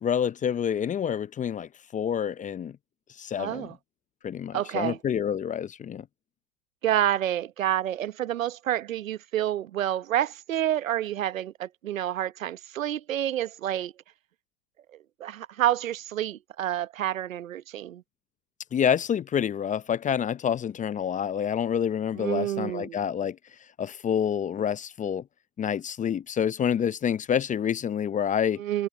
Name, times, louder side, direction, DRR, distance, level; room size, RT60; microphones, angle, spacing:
voice 1, 0.0-2.8 3.2-3.7 4.2-6.0 18.7-23.4 23.8-25.2 25.6-28.6, left 8 dB, 20° left, 0.7 m, -27 dB
voice 2, 3.4-3.7 4.5-5.0 6.8-13.9 15.2-18.0 22.2-23.0 28.6-28.9, right 12 dB, 80° right, 1.1 m, -28 dB
hypercardioid pair, 95°, 39 cm